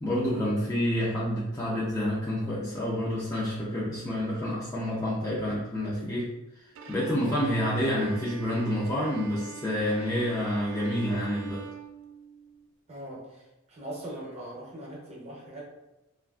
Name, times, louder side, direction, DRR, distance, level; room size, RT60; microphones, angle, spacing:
voice 1, 0.0-6.3 6.9-11.6, equal, 15° left, -8 dB, 0.4 m, -28 dB
Bowed string instrument, 6.7-12.7, right 7 dB, 60° right, 0.3 m, -45 dB
voice 2, 12.9-15.6, right 1 dB, 30° right, -4 dB, 0.7 m, -41 dB
2.8 x 2.4 x 2.3 m, 0.99 s
head